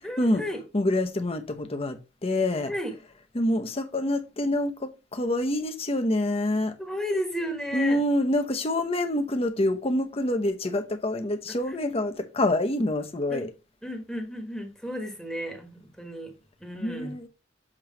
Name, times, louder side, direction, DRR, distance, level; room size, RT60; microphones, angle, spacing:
voice 1, 0.0-0.6 2.7-2.9 6.8-8.0 13.3-13.5 13.8-16.3 16.6-17.1, equal, 5° left, 1.2 m, -33 dB
voice 2, 0.7-2.7 3.3-6.8 7.7-13.5 16.8-17.3, left 1 dB, 30° left, 0.9 m, -26 dB
7.5 x 3.1 x 5.1 m
head